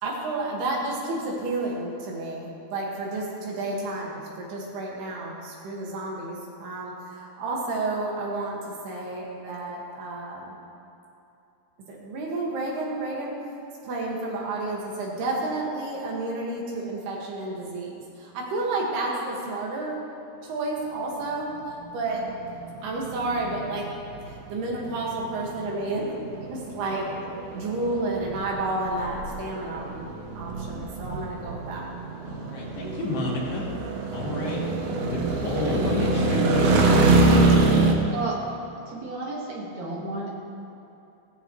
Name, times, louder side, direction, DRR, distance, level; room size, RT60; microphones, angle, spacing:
voice 1, 0.0-8.6 8.9-10.5 11.9-13.3 13.9-20.0 20.5-21.5 21.9-22.2 22.8-23.8 24.5-26.1 26.5-27.1 27.5-29.9 30.4-31.9, right 2 dB, 90° right, -2 dB, 3.9 m, -31 dB
sound 1, 21.8-37.9, right 3 dB, 70° right, 1.6 m, -25 dB
voice 2, 32.3-33.7 34.1-34.6 35.0-36.8, left 2 dB, 80° left, -4 dB, 4.1 m, -30 dB
voice 3, 38.1-38.4 38.9-40.3, right 3 dB, 55° right, -4 dB, 2.9 m, -32 dB
16.5 x 14.5 x 3.2 m, 2.8 s
omnidirectional pair, 4.4 m